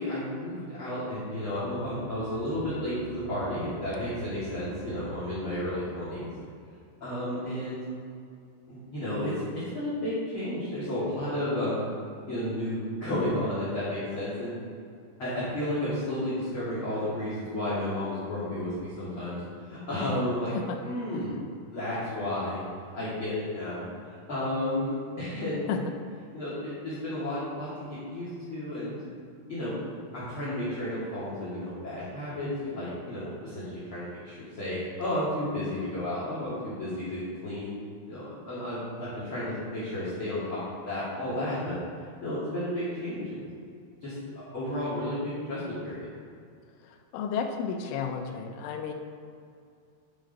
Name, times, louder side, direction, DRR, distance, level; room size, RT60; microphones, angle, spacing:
voice 1, 0.0-6.3 7.0-7.8 8.7-11.9 12.2-14.6 15.2-21.3 21.7-22.6 22.9-25.7 26.3-29.0 29.5-29.8 30.1-33.6 33.9-37.7 38.1-41.7 42.2-43.5 44.0-46.1, left 1 dB, 45° left, -10 dB, 1.6 m, -32 dB
sound 1, 1.4-6.5, right 10 dB, 85° right, 3.4 m, -47 dB
voice 2, 47.1-48.9, left 6 dB, 80° left, 4 dB, 3.2 m, -32 dB
10.5 x 6.8 x 4.0 m, 2.4 s
omnidirectional pair, 5.8 m